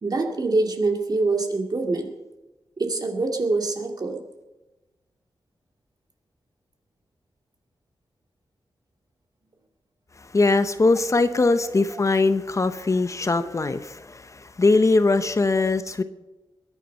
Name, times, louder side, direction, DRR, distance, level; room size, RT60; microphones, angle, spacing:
voice 1, 0.0-2.1 2.8-4.2 11.6-11.8 13.4-13.5 15.5-15.6, right 3 dB, 45° right, 3 dB, 2.4 m, -25 dB
voice 2, 10.3-16.0, left 3 dB, 35° left, 11 dB, 0.8 m, -21 dB
21.5 x 10.0 x 5.5 m, 1.1 s
wide cardioid pair, 100°, 9 cm